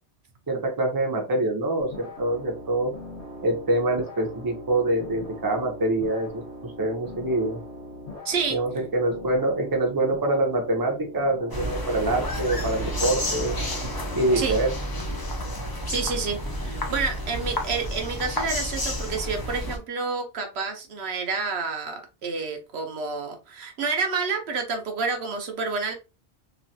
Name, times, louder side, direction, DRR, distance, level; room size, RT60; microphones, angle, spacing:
voice 1, 0.5-2.9 3.4-7.6 8.5-13.5 14.1-14.7, right 2 dB, 25° right, 2 dB, 0.6 m, -25 dB
sound 1, 1.8-14.4, left 1 dB, 90° left, 1.3 m, -41 dB
voice 2, 8.2-8.6 14.4-14.6 15.9-25.9, right 4 dB, 70° right, 4 dB, 0.9 m, -29 dB
sound 2, 11.5-19.8, equal, 30° left, 0.5 m, -30 dB
3.0 x 2.4 x 2.6 m, 0.30 s
omnidirectional pair, 1.1 m